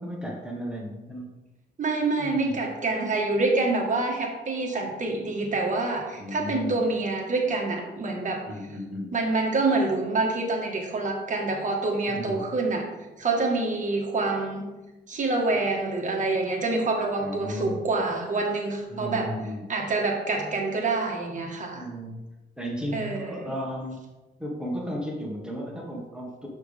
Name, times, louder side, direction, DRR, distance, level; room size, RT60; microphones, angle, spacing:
voice 1, 0.0-1.4 2.2-2.6 6.2-6.8 8.4-9.1 12.1-12.5 17.2-17.8 18.9-19.6 21.7-22.2 22.6-24.0 24.4-26.5, equal, 5° right, -2 dB, 1.7 m, -34 dB
voice 2, 1.8-8.7 9.1-12.9 13.2-14.6 15.1-19.3 19.7-21.8 22.9-23.5, right 3 dB, 40° right, 1 dB, 1.7 m, -26 dB
6.6 x 6.2 x 3.6 m, 1.1 s
cardioid pair, 90°, 20 cm